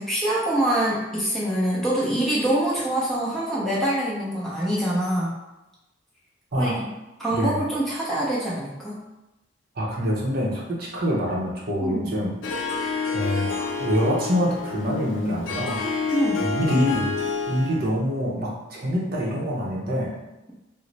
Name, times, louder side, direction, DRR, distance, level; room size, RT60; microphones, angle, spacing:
voice 1, 0.0-5.3 6.6-6.9 7.2-9.0 11.8-12.1 16.1-16.5, right 1 dB, ahead, -7 dB, 0.7 m, -25 dB
voice 2, 9.8-12.3 13.1-15.8 16.4-17.1 17.5-20.1, equal, 50° right, -3 dB, 0.7 m, -25 dB
Harp, 12.4-17.9, left 4 dB, 80° left, 0.5 m, -28 dB
3.1 x 2.0 x 3.9 m, 0.99 s
head